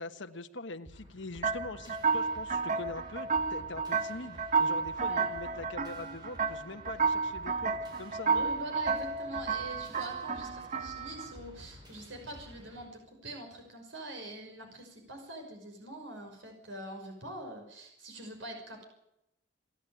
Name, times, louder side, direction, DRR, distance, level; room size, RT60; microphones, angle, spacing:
voice 1, 0.0-8.5, left 2 dB, 70° left, 7 dB, 1.4 m, -43 dB
sound 1, 0.9-12.9, equal, 25° right, 7.1 m, -52 dB
sound 2, 1.4-11.3, right 5 dB, 40° right, 1.3 m, -32 dB
voice 2, 8.3-18.9, right 1 dB, 75° right, 3 dB, 5.8 m, -44 dB
27.5 x 11.0 x 9.2 m, 0.83 s
head